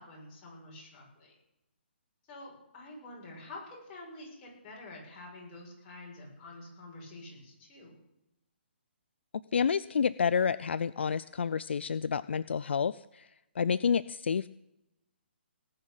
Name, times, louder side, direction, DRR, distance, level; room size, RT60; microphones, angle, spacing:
voice 1, 0.0-1.3 2.3-8.0, left 2 dB, 30° left, -3 dB, 7.1 m, -48 dB
voice 2, 9.5-13.3 13.6-14.6, left 6 dB, 70° left, 16 dB, 0.4 m, -29 dB
18.5 x 6.6 x 8.9 m, 0.91 s
hypercardioid pair, 145°, 6 cm